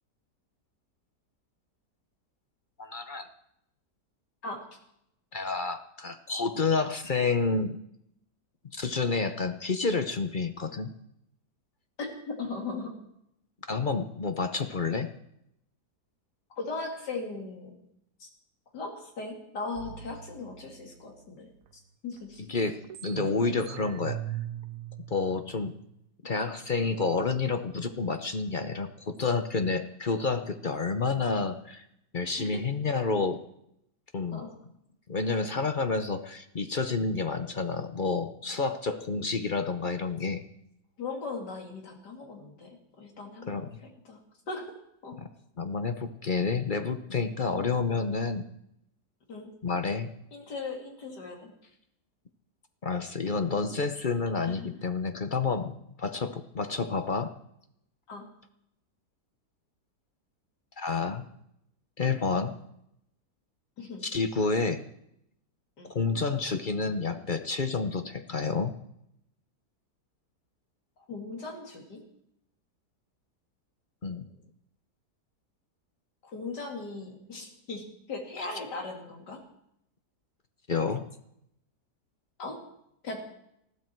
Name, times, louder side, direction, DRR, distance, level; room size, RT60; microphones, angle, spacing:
voice 1, 2.8-3.3 5.3-7.8 8.7-10.9 13.7-15.1 22.5-24.2 25.1-25.7 26.2-31.8 32.1-33.4 34.1-34.4 35.1-40.4 43.5-43.7 45.2-45.3 45.6-48.4 49.6-50.1 52.8-57.3 60.8-61.3 62.0-62.6 64.0-64.8 65.9-68.7 74.0-74.3 80.7-81.1, left 4 dB, 40° left, 9 dB, 0.8 m, -29 dB
voice 2, 12.0-12.9 16.6-17.8 18.2-18.3 18.7-21.5 22.0-22.5 32.3-32.6 34.3-34.5 41.0-43.7 44.0-44.2 44.5-44.7 45.0-45.2 47.5-47.7 49.3-49.5 50.3-51.5 54.4-54.7 58.1-58.3 63.8-64.0 65.8-65.9 71.1-72.0 76.2-79.4 82.4-82.6 83.0-83.2, left 3 dB, 90° left, 2 dB, 3.3 m, -38 dB
sound 1, 19.7-21.7 22.2-22.3 22.5-26.1, right 13 dB, 60° right, 1.1 m, -41 dB
20.0 x 14.0 x 4.6 m, 0.77 s
omnidirectional pair, 1.8 m